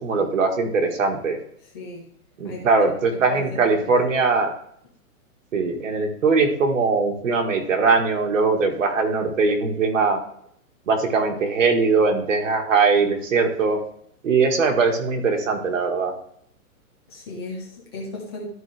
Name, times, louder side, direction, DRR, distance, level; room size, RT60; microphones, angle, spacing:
voice 1, 0.0-1.4 2.4-4.5 5.5-10.2 10.9-13.8 14.2-16.1, right 4 dB, 60° right, 3 dB, 1.9 m, -21 dB
voice 2, 1.7-2.0 2.4-2.7 3.1-4.1 17.1-18.5, left 3 dB, 15° left, -2 dB, 1.1 m, -36 dB
12.5 x 5.1 x 3.4 m, 0.68 s
hypercardioid pair, 175°, 44 cm